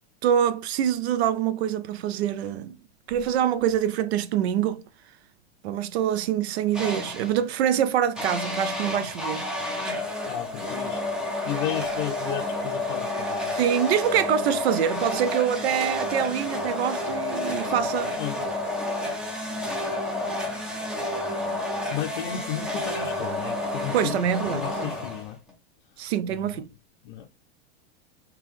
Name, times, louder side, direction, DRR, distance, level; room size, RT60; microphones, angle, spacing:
voice 1, 0.2-2.8 3.1-4.8 5.6-9.5 13.5-18.2 23.9-24.9 26.0-26.7, right 9 dB, 85° right, 0.5 m, -25 dB
sound 1, 6.7-7.4 8.2-25.5, left 1 dB, ahead, 0.4 m, -30 dB
voice 2, 10.2-13.6 18.2-18.5 21.9-25.4 26.3-26.7 27.0-27.3, left 11 dB, 50° left, 0.5 m, -34 dB
3.6 x 2.9 x 3.1 m
supercardioid pair, 155°, 31 cm